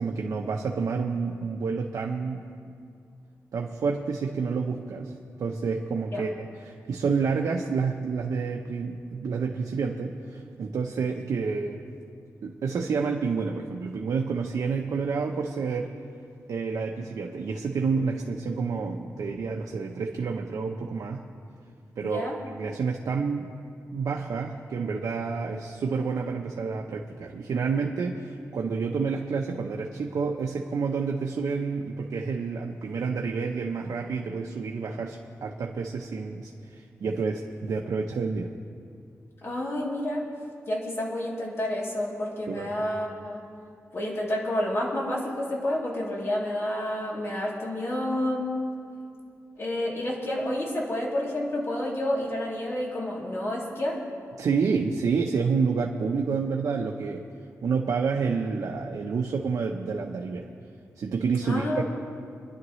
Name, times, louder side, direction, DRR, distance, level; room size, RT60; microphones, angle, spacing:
voice 1, 0.0-2.5 3.5-5.1 5.4-11.8 12.4-15.9 16.5-21.3 22.0-23.5 23.9-38.5 42.5-42.7 54.4-57.2 57.6-60.5 61.0-61.8, right 5 dB, 80° right, 1 dB, 0.8 m, -29 dB
voice 2, 22.0-22.4 39.4-40.3 40.7-43.4 43.9-48.5 49.6-54.0 61.4-61.8, left 1 dB, 45° left, -4 dB, 3.1 m, -29 dB
26.0 x 11.0 x 3.2 m, 2.3 s
wide cardioid pair, 125°, 6 cm